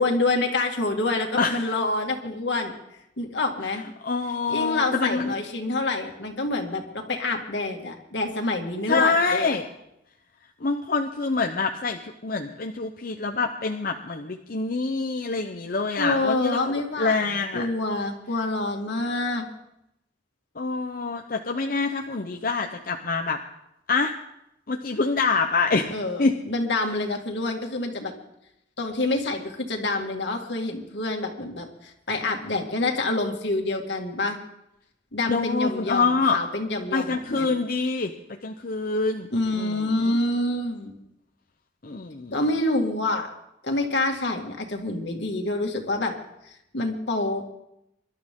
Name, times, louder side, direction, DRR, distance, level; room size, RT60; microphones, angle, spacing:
voice 1, 0.0-2.7 3.2-3.8 4.5-9.6 16.0-17.3 17.5-19.5 25.9-28.1 28.8-34.4 35.1-37.5 39.3-41.0 42.3-43.3 43.6-46.1 46.5-47.5, left 2 dB, 75° left, 2 dB, 2.2 m, -27 dB
voice 2, 4.0-5.3 8.9-9.6 10.6-16.7 17.0-17.7 20.6-23.4 23.9-24.1 24.7-25.9 26.2-26.4 35.3-36.4 36.9-38.1 38.4-40.2 41.8-42.4, left 4 dB, 55° left, 4 dB, 0.8 m, -26 dB
24.5 x 12.0 x 3.7 m, 0.83 s
head